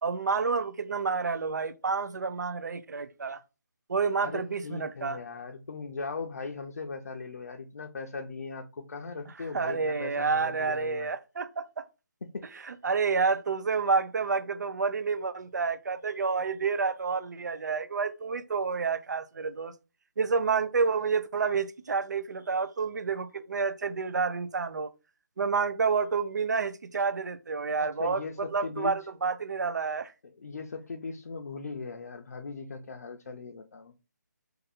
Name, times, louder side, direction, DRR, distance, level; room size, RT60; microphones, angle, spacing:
voice 1, 0.0-3.4 3.9-5.2 9.5-11.8 12.7-19.7 20.2-24.9 25.4-30.1, right 5 dB, 85° right, 0.5 m, -29 dB
voice 2, 4.2-11.1 12.2-12.7 27.7-29.0 30.2-34.0, left 4 dB, 70° left, 0.5 m, -39 dB
2.6 x 2.6 x 4.1 m
hypercardioid pair, 170°, 9 cm